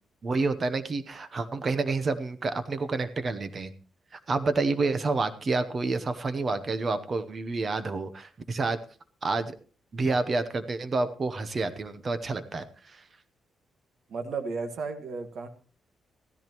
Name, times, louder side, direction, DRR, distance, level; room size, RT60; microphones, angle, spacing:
voice 1, 0.2-3.7 4.1-8.8 9.2-9.6 9.9-13.0, right 3 dB, 30° right, 11 dB, 0.8 m, -29 dB
voice 2, 14.1-15.5, right 4 dB, 60° right, 7 dB, 1.7 m, -34 dB
16.0 x 13.5 x 3.0 m, 0.39 s
wide cardioid pair, 170°, 0 cm